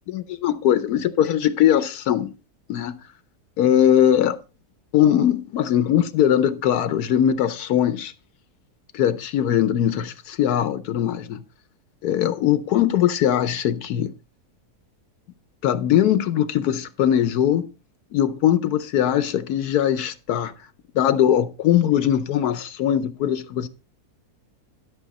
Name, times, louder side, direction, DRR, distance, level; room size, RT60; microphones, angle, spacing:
voice 1, 0.1-2.3 2.7-2.9 3.6-4.4 4.9-8.1 8.9-11.4 12.0-14.1 15.6-17.7 18.1-20.5 20.9-23.7, left 10 dB, 75° left, 1.1 m, -20 dB
12.0 x 6.5 x 4.1 m
omnidirectional pair, 1.7 m